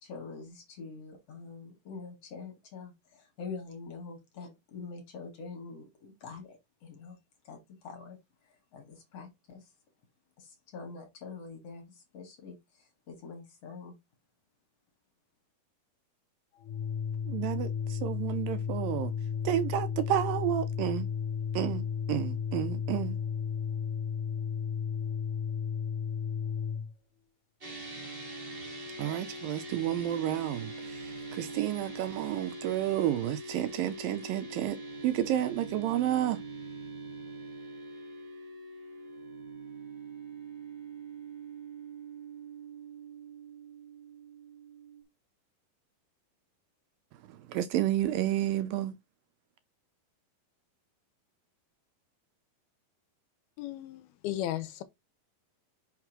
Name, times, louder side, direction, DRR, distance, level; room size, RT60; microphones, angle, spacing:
voice 1, 0.0-7.2 7.4-9.7 10.4-14.0, left 4 dB, 45° left, 2.7 m, -45 dB
Organ, 16.6-26.9, left 7 dB, 65° left, 2.6 m, -33 dB
voice 2, 17.3-19.1 19.5-21.1 21.6-21.8 22.1-23.1 29.0-30.7 31.3-34.8 35.0-36.4 47.5-48.9, right 12 dB, 80° right, 2.3 m, -30 dB
sound 1, 27.6-45.0, right 2 dB, 25° right, 1.3 m, -43 dB
voice 3, 53.6-54.8, left 13 dB, 85° left, 2.7 m, -35 dB
6.0 x 3.7 x 6.0 m
omnidirectional pair, 4.4 m